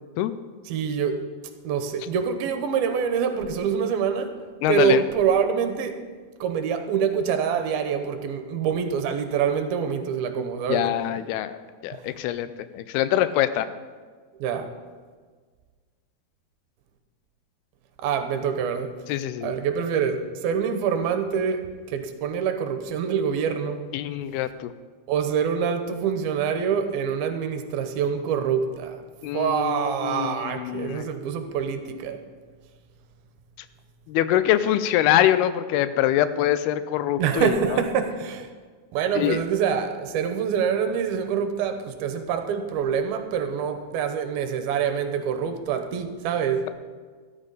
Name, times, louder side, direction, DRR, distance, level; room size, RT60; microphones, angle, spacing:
voice 1, 0.7-1.2 1.6-4.4 4.7-6.0 6.4-10.9 11.9-12.1 14.4-14.7 18.0-19.0 19.4-21.6 21.9-23.9 25.1-29.1 29.3-32.2 37.2-38.5 38.9-46.7, right 7 dB, 80° right, 7 dB, 2.6 m, -25 dB
voice 2, 4.6-5.0 10.7-11.6 11.8-13.7 19.1-19.5 23.9-24.7 29.2-31.1 34.1-37.5 39.2-39.4, left 12 dB, 85° left, 13 dB, 2.6 m, -24 dB
13.0 x 13.0 x 4.0 m, 1.5 s
omnidirectional pair, 4.5 m